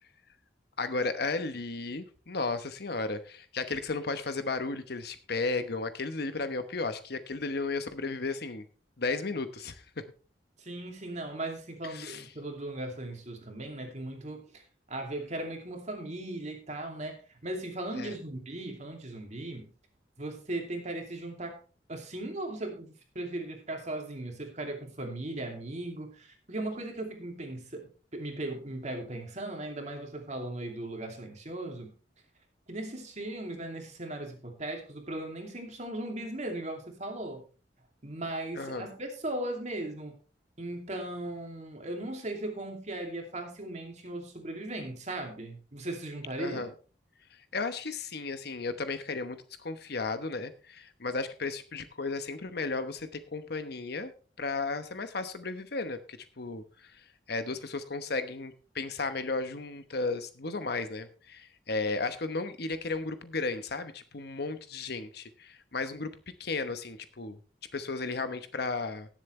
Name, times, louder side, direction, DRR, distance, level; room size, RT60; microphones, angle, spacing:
voice 1, 0.8-8.6 9.0-9.8 11.9-12.3 18.0-18.1 38.5-38.9 46.4-46.7 47.5-54.1 54.4-57.0 57.3-66.1 66.4-67.4 67.7-69.1, left 3 dB, 60° left, 11 dB, 1.0 m, -34 dB
voice 2, 10.6-14.5 14.9-19.7 20.2-21.6 21.9-31.9 32.7-37.4 38.0-40.2 40.6-46.6, right 1 dB, 40° right, 3 dB, 2.6 m, -38 dB
18.0 x 7.4 x 3.3 m, 0.37 s
head